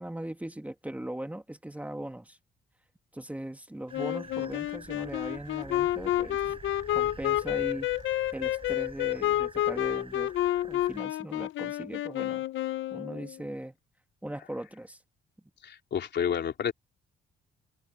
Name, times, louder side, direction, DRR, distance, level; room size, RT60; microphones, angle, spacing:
voice 1, 0.0-2.4 3.1-6.4 6.9-7.9 8.3-10.3 10.6-12.5 12.9-13.7 14.2-15.0, right 1 dB, 5° right, 2.0 m, -39 dB
Wind instrument woodwind instrument, 3.9-13.4, left 14 dB, 80° left, 0.8 m, -30 dB
sound 1, 3.9-11.0, right 4 dB, 25° right, 6.6 m, -48 dB
voice 2, 15.6-16.7, left 8 dB, 60° left, 3.7 m, -30 dB
cardioid pair, 90°, 20 cm